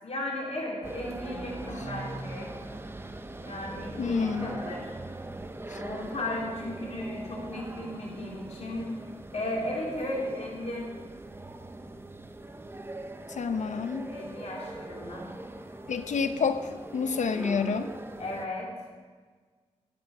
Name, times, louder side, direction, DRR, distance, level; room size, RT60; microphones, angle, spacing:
voice 1, 0.0-2.5 3.4-4.9 5.8-8.9 9.3-10.9 14.1-15.3 18.2-18.7, left 1 dB, 65° left, -3 dB, 2.9 m, -35 dB
sound 1, 0.8-18.5, right 2 dB, 20° right, 0.6 m, -41 dB
voice 2, 4.0-4.5 5.7-5.8 13.3-14.1 15.9-17.9, left 5 dB, 80° left, 9 dB, 0.7 m, -29 dB
12.5 x 9.1 x 4.8 m, 1.5 s
wide cardioid pair, 135°, 12 cm